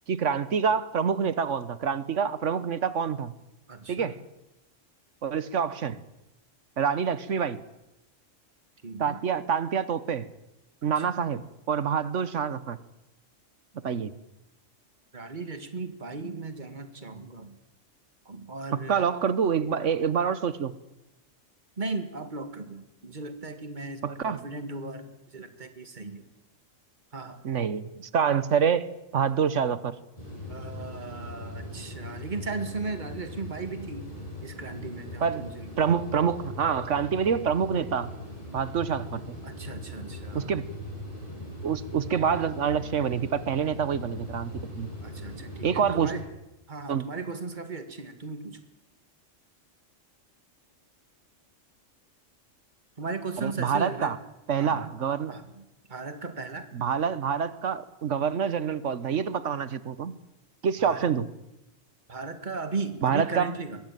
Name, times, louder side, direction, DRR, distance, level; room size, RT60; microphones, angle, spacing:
voice 1, 0.1-3.3 3.9-4.2 5.2-6.0 6.8-7.6 9.0-10.3 10.8-11.4 11.7-12.8 13.8-14.1 18.9-20.7 24.0-24.4 27.4-28.9 29.1-29.9 35.2-35.4 35.8-38.1 38.5-39.4 40.3-40.6 41.6-44.9 45.6-46.1 46.9-47.0 53.4-54.2 54.5-55.3 56.7-60.1 60.6-61.3 63.0-63.5, right 7 dB, 75° right, 15 dB, 1.4 m, -26 dB
voice 2, 3.7-4.1 8.8-9.2 10.8-11.4 15.1-17.6 18.3-19.1 21.8-26.3 27.1-27.4 30.5-34.1 34.4-35.7 39.4-40.5 45.0-46.2 46.7-48.6 53.0-54.2 54.6-54.9 55.3-56.7 60.8-61.1 62.1-63.8, right 3 dB, 40° right, 8 dB, 2.1 m, -37 dB
sound 1, 30.2-46.2, left 1 dB, 30° left, 7.5 m, -40 dB
22.5 x 15.5 x 9.2 m, 0.92 s
omnidirectional pair, 1.3 m